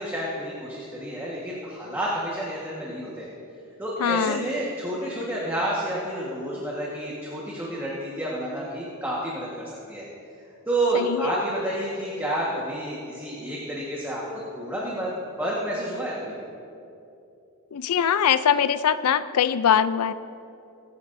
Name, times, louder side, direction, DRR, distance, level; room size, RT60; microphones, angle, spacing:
voice 1, 0.0-3.3 3.8-10.1 10.7-14.2 14.5-15.1 15.4-16.4, right 1 dB, 10° right, -5 dB, 1.4 m, -29 dB
voice 2, 4.0-4.5 10.9-11.4 17.7-20.1, left 8 dB, 90° left, 14 dB, 0.4 m, -22 dB
24.5 x 9.6 x 2.7 m, 2.7 s
head